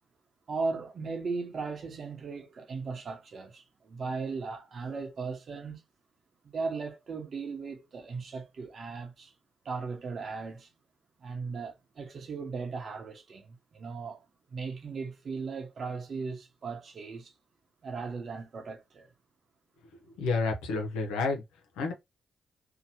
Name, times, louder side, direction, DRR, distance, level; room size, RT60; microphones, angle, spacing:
voice 1, 0.5-5.8 6.4-9.3 9.6-10.7 11.2-14.2 14.5-17.3 17.8-19.1, right 4 dB, 60° right, 0.9 m, -37 dB
voice 2, 20.2-21.4 21.8-21.9, left 4 dB, 90° left, 0.6 m, -29 dB
2.8 x 2.2 x 2.7 m
supercardioid pair, 50°, 0 cm